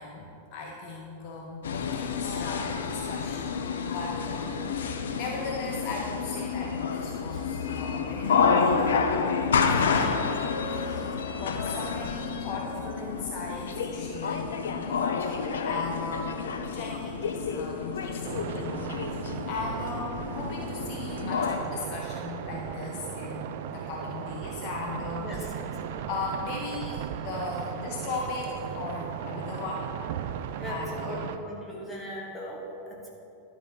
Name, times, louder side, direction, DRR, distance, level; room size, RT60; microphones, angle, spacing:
voice 1, 0.0-3.6 3.8-25.5 26.1-29.9 30.7-31.3, left 3 dB, 40° left, -2 dB, 1.0 m, -38 dB
sound 1, 1.6-21.6, left 5 dB, 65° left, 0.5 m, -29 dB
sound 2, 18.2-31.4, right 8 dB, 50° right, 0.4 m, -37 dB
voice 2, 25.2-25.7 30.6-33.1, equal, 10° left, -4 dB, 1.8 m, -39 dB
11.0 x 4.1 x 5.8 m, 2.8 s
figure-of-eight pair, 90°, 0 cm